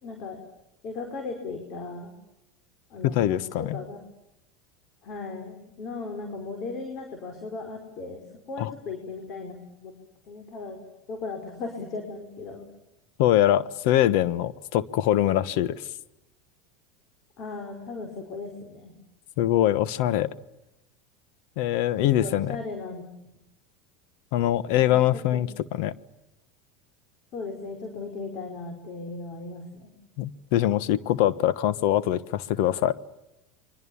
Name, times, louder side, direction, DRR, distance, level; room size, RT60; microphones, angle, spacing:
voice 1, 0.0-0.4 0.8-2.1 2.9-3.4 3.7-4.0 5.0-8.2 8.5-9.5 9.8-9.9 10.3-10.8 11.1-12.7 17.4-18.9 22.2-23.0 24.7-25.0 25.3-25.4 27.3-29.9, left 3 dB, 50° left, 4 dB, 4.9 m, -37 dB
voice 2, 3.0-3.8 8.6-8.7 13.2-15.8 19.4-20.3 21.6-22.6 24.3-25.9 30.2-33.0, left 12 dB, 70° left, 17 dB, 1.2 m, -23 dB
29.0 x 23.5 x 7.2 m, 0.89 s
supercardioid pair, 105°, 0 cm